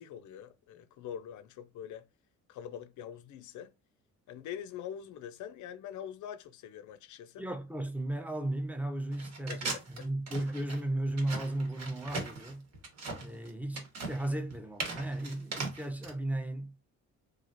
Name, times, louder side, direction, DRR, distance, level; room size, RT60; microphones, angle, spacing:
voice 1, 0.0-2.1 2.5-3.7 4.3-7.4 9.5-9.6 10.0-10.1, left 9 dB, 75° left, 0.5 m, -44 dB
voice 2, 7.4-12.7 13.2-16.8, right 1 dB, 5° right, 0.5 m, -35 dB
sound 1, 9.1-16.1, right 3 dB, 60° right, 1.0 m, -39 dB
3.1 x 2.4 x 2.5 m
cardioid pair, 90°, 30 cm